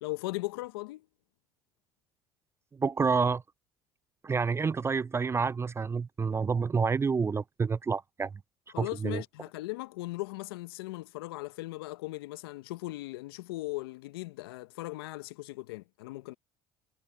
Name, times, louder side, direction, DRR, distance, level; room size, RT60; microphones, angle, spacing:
voice 1, 0.0-1.1 8.7-16.4, left 20 dB, 80° left, 1.1 m, -38 dB
voice 2, 2.7-3.4 4.2-8.3 8.8-9.2, right 5 dB, 20° right, 0.4 m, -28 dB
hypercardioid pair, 65°, 12 cm